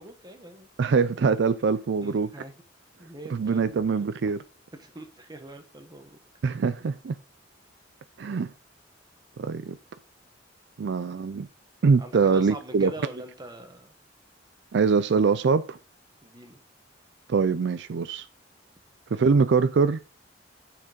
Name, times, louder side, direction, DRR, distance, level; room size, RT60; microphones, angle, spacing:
voice 1, 0.0-0.7 2.0-2.5 3.0-3.7 4.2-4.3 4.7-6.2 12.0-13.9 16.2-16.6, right 2 dB, 20° right, 1.2 m, -43 dB
voice 2, 0.8-2.3 3.3-4.4 6.4-7.1 8.2-8.5 9.4-9.8 10.8-11.5 11.8-12.9 14.7-15.8 17.3-18.3 19.1-20.0, right 5 dB, 65° right, 0.4 m, -23 dB
6.6 x 5.9 x 5.1 m
head